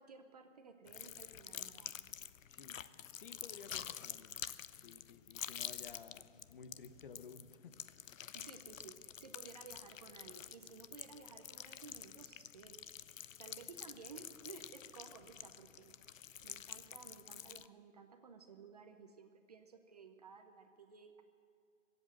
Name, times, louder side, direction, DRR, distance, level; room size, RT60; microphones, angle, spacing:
voice 1, 0.0-2.1 8.3-12.8 13.4-15.9 16.4-21.2, right 5 dB, 30° right, 7 dB, 0.7 m, -56 dB
sound 1, 0.9-17.7, left 9 dB, 75° left, 0.6 m, -49 dB
voice 2, 2.5-2.9 3.2-4.3 4.8-7.8, left 6 dB, 40° left, 11 dB, 0.9 m, -54 dB
21.5 x 8.1 x 7.7 m, 2.3 s
hypercardioid pair, 160°, 39 cm